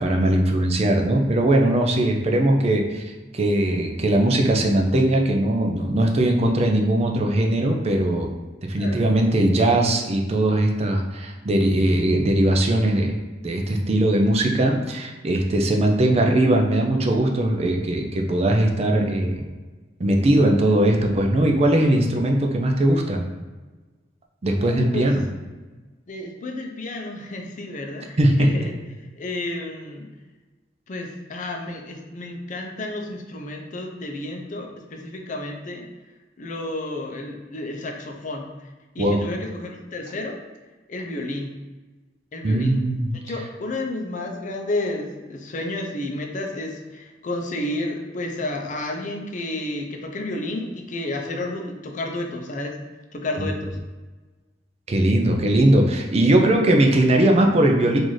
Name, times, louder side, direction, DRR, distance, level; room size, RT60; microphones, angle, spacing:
voice 1, 0.0-3.0 3.3-8.3 8.6-13.2 13.4-19.4 20.0-23.2 24.4-25.2 28.2-28.5 39.0-39.2 42.4-43.1 54.9-58.0, right 1 dB, 35° right, 2 dB, 0.4 m, -20 dB
voice 2, 24.6-25.1 26.1-28.7 29.2-30.1 30.9-35.9 36.4-38.5 38.9-40.4 40.9-41.5 42.3-42.8 43.2-52.7 53.1-53.8, left 2 dB, 45° left, 2 dB, 0.5 m, -31 dB
3.9 x 2.5 x 3.1 m, 1.2 s
head